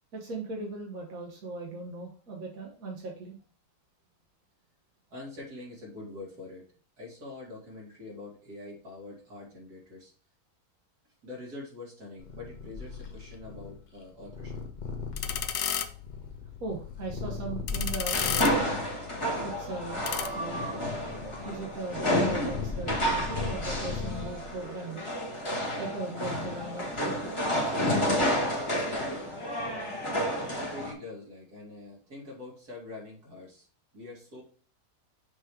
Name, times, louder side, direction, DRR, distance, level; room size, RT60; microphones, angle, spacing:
voice 1, 0.1-3.4 16.6-18.7 19.4-20.1 20.3-20.6 21.2-25.0 25.8-27.4, right 3 dB, 65° right, 0 dB, 1.5 m, -38 dB
voice 2, 5.1-6.6 7.0-10.1 11.2-14.5 30.5-33.7 33.9-34.4, left 2 dB, 85° right, -4 dB, 3.1 m, -44 dB
Purr, 12.2-18.7 19.4-24.6, left 5 dB, 35° left, 0.9 m, -38 dB
sound 1, 14.8-20.3, left 9 dB, 70° left, 0.9 m, -35 dB
sound 2, 18.1-30.9, equal, 20° left, 1.5 m, -30 dB
6.6 x 3.1 x 4.9 m, 0.40 s
omnidirectional pair, 1.6 m